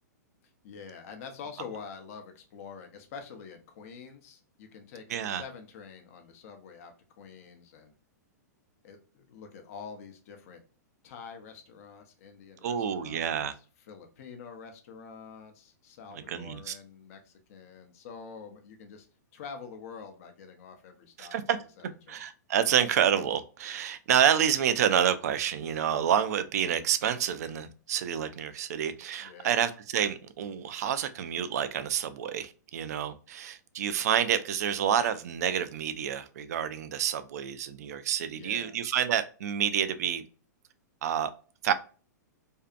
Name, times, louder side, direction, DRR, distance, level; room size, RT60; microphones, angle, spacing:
voice 1, 0.6-7.9 8.8-10.6 11.0-13.5 13.9-19.1 19.3-21.4 21.8-22.2 29.2-29.5 38.3-38.7, left 6 dB, 50° left, 0.6 m, -46 dB
voice 2, 5.1-5.4 12.6-13.5 16.3-16.8 21.2-21.6 22.1-40.2 41.0-41.3 41.6-41.7, right 9 dB, 60° right, 0.4 m, -28 dB
2.6 x 2.4 x 2.3 m
hypercardioid pair, 110°, 10 cm